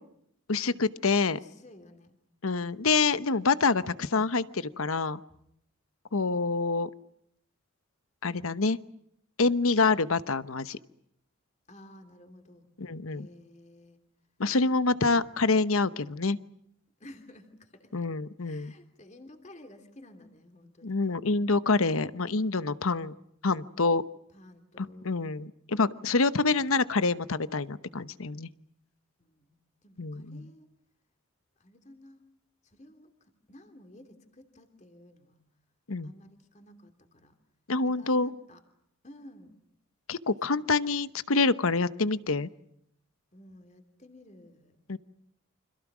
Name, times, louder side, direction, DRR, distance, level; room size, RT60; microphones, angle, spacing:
voice 1, 0.5-1.4 2.4-5.2 6.1-6.9 8.2-8.8 9.4-10.8 12.8-13.3 14.4-16.4 17.9-18.7 20.8-23.1 23.4-24.0 24.8-28.5 30.0-30.4 35.9-36.1 37.7-38.3 40.1-42.5 44.9-45.0, left 3 dB, 75° left, 15 dB, 1.0 m, -26 dB
voice 2, 1.3-2.1 11.7-12.7 13.1-14.0 15.0-15.3 17.0-18.1 18.4-21.2 24.3-25.2 29.2-29.6 29.8-30.7 31.6-32.2 32.6-35.4 36.0-37.4 37.9-38.6 39.0-39.6 40.5-40.6 43.3-44.8, left 1 dB, 30° left, 7 dB, 3.0 m, -53 dB
29.5 x 26.0 x 6.2 m, 0.73 s
head